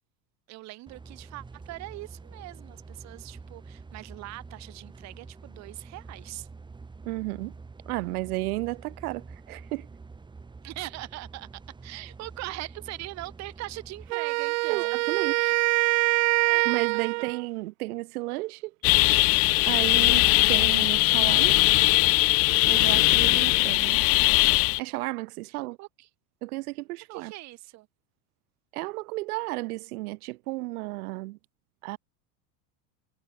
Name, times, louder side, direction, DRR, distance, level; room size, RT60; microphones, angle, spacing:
voice 1, 0.5-6.5 10.6-11.5 11.8-15.0 16.4-17.1 20.0-20.5 25.4-26.1 27.1-27.9, right 19 dB, 35° right, 1.9 m, -41 dB
sound 1, 0.9-14.1, right 4 dB, 10° right, 5.6 m, -47 dB
voice 2, 7.0-7.5 7.9-9.9 14.7-15.6 16.7-18.7 19.7-21.6 22.7-24.0 24.8-25.8 26.4-27.3 28.7-31.4 31.8-32.0, right 21 dB, 80° right, 1.8 m, -33 dB
Wind instrument woodwind instrument, 14.1-17.5, right 28 dB, 60° right, 0.6 m, -24 dB
sound 2, 18.8-24.8, left 27 dB, 35° left, 0.5 m, -20 dB
cardioid pair, 170°, 44 cm